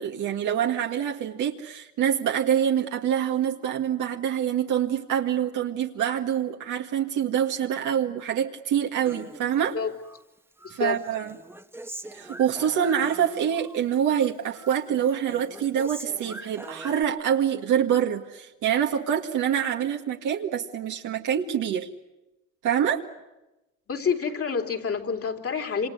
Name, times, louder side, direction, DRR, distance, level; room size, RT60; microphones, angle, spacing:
voice 1, 0.0-9.8 10.7-11.4 12.1-21.9 22.6-23.0, right 9 dB, 85° right, 1 dB, 2.0 m, -26 dB
Human voice, 9.0-10.2 10.6-13.8 14.1-14.8 15.0-17.0, right 1 dB, 5° right, 1.2 m, -42 dB
voice 2, 10.6-11.0 23.9-25.9, left 6 dB, 50° left, 5 dB, 3.5 m, -28 dB
28.0 x 26.0 x 8.0 m, 0.98 s
cardioid pair, 90°, 30 cm